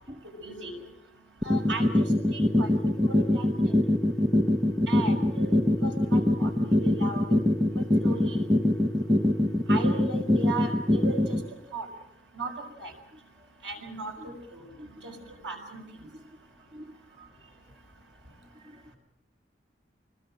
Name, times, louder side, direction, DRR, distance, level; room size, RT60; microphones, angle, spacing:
voice 1, 0.4-0.8 1.4-2.0 2.3-3.7 4.9-7.2 8.0-8.5 9.7-11.4 11.7-11.9 12.4-12.5 12.8-12.9 13.6-14.6 15.0-15.1 15.4-15.8, right 3 dB, 80° right, 3 dB, 6.2 m, -36 dB
sound 1, 1.4-11.4, left 1 dB, 20° right, 1.1 m, -22 dB
voice 2, 14.8-15.2 16.1-16.3 16.7-17.6 18.5-18.9, equal, 35° right, 2 dB, 2.8 m, -49 dB
26.0 x 21.5 x 7.7 m, 0.80 s
head